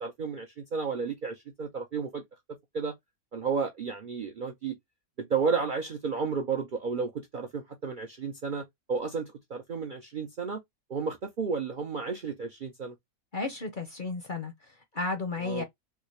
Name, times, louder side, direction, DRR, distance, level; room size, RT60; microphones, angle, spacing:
voice 1, 0.0-2.2 2.7-2.9 3.3-4.8 5.2-10.6 10.9-12.9 15.4-15.6, right 5 dB, 55° right, 0.5 m, -32 dB
voice 2, 13.3-15.6, left 3 dB, 45° left, 0.7 m, -33 dB
3.6 x 2.3 x 3.0 m
omnidirectional pair, 1.5 m